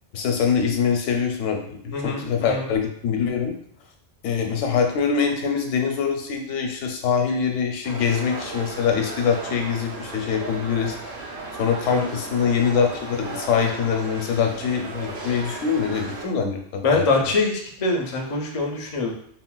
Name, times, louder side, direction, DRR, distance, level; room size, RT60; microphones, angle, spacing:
voice 1, 0.1-3.5 4.2-11.0 11.6-17.1, left 6 dB, 80° left, 3 dB, 0.9 m, -24 dB
voice 2, 1.9-2.7 11.9-12.1 16.8-19.1, left 3 dB, 55° left, 1 dB, 0.4 m, -24 dB
sound 1, 7.8-16.3, right 3 dB, 55° right, 0.7 m, -35 dB
3.8 x 2.1 x 2.2 m, 0.69 s
omnidirectional pair, 1.3 m